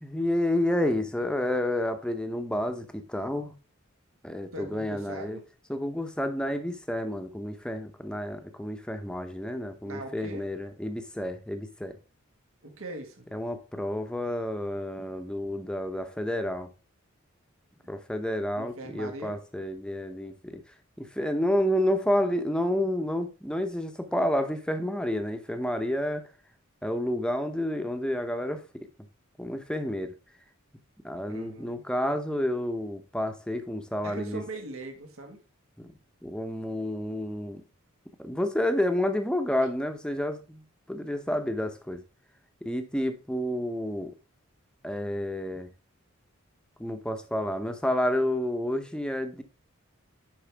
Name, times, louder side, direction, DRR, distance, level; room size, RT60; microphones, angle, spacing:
voice 1, 0.0-3.5 4.2-5.4 5.7-12.0 13.3-16.7 17.9-20.6 21.0-26.3 26.8-28.9 29.4-30.1 31.0-34.4 35.8-35.9 36.2-37.6 38.2-40.6 40.9-42.0 42.6-44.1 44.8-45.7 46.8-49.4, left 1 dB, 5° left, 0.8 m, -30 dB
voice 2, 4.5-5.4 9.8-10.5 12.6-13.3 18.6-19.4 31.3-31.8 34.0-35.4, right 2 dB, 75° right, 1.6 m, -40 dB
11.0 x 4.7 x 3.4 m
head